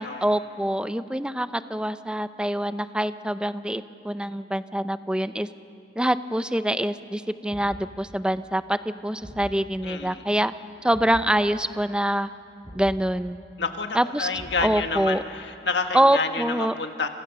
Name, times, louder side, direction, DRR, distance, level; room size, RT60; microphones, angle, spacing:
voice 1, 0.0-5.5 6.0-10.5 10.8-12.3 12.7-13.4 13.9-14.3 14.6-15.2 15.9-16.7, right 1 dB, 5° right, 11 dB, 0.6 m, -25 dB
Thump thud, 7.5-7.9 9.2-9.6 10.9-11.3 12.6-13.0 14.3-14.9, equal, 25° right, 7.3 m, -41 dB
voice 2, 9.8-10.2 13.6-17.1, left 4 dB, 65° left, 5 dB, 1.6 m, -29 dB
28.5 x 28.0 x 6.8 m, 2.5 s
head